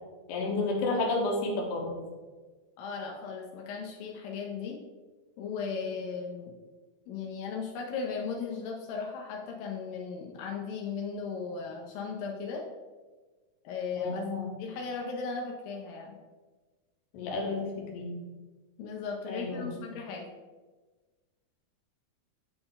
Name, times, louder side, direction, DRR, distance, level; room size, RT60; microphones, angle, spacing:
voice 1, 0.3-1.9 13.9-14.5 17.1-18.1 19.3-19.7, left 2 dB, 70° left, 0 dB, 2.6 m, -31 dB
voice 2, 2.8-4.8 5.4-6.5 7.1-12.6 13.6-14.2 14.6-16.2 18.8-20.3, left 5 dB, 85° left, 0 dB, 2.4 m, -36 dB
8.8 x 4.0 x 3.9 m, 1.3 s
omnidirectional pair, 3.9 m